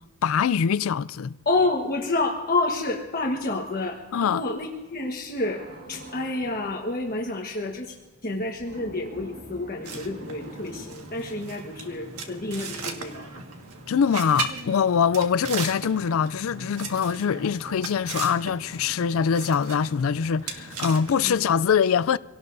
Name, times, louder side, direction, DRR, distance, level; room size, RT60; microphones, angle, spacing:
voice 1, 0.2-1.3 4.1-4.4 13.9-22.2, left 7 dB, 65° left, 0.4 m, -23 dB
voice 2, 1.4-5.6 5.9-7.9 8.2-13.4 21.2-21.4, left 2 dB, 40° left, 1.3 m, -29 dB
sound 1, 5.4-6.8 8.6-10.9, equal, 40° right, 1.8 m, -44 dB
sound 2, 9.8-21.6, right 4 dB, 90° right, 1.7 m, -37 dB
26.0 x 18.0 x 2.7 m
head